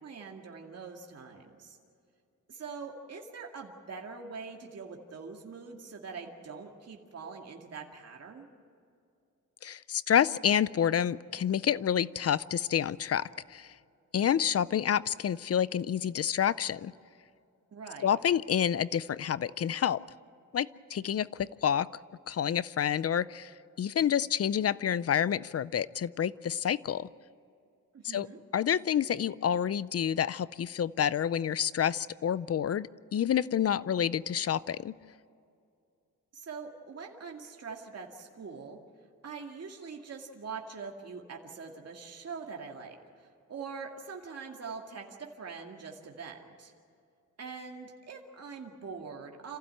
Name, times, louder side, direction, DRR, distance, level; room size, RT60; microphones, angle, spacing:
voice 1, 0.0-1.8 2.5-8.5 17.7-18.2 27.9-28.4 36.3-38.8 39.2-46.7 47.4-49.6, right 5 dB, 55° right, 1 dB, 2.2 m, -43 dB
voice 2, 9.6-13.7 14.1-16.9 18.0-20.0 20.5-21.9 22.3-27.1 28.0-28.3 28.5-34.9, left 9 dB, 50° left, 19 dB, 0.5 m, -28 dB
27.0 x 15.5 x 8.9 m, 2.4 s
cardioid pair, 100°, 31 cm